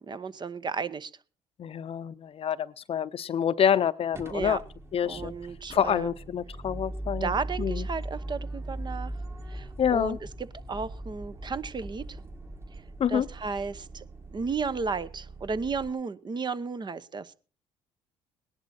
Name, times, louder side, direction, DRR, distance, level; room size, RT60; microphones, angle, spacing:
voice 1, 0.1-1.1 4.3-4.6 5.1-6.1 7.2-9.1 9.5-10.2 10.7-12.2 13.1-14.0 14.3-17.3, right 5 dB, 35° right, 14 dB, 0.9 m, -33 dB
voice 2, 1.6-4.6 4.9-5.3 5.7-7.9 9.8-10.2 13.0-13.3, left 8 dB, 45° left, 15 dB, 0.7 m, -27 dB
sound 1, 4.1-15.9, right 1 dB, 20° right, 1.7 m, -39 dB
18.5 x 10.5 x 4.3 m, 0.39 s
supercardioid pair, 70°, 13 cm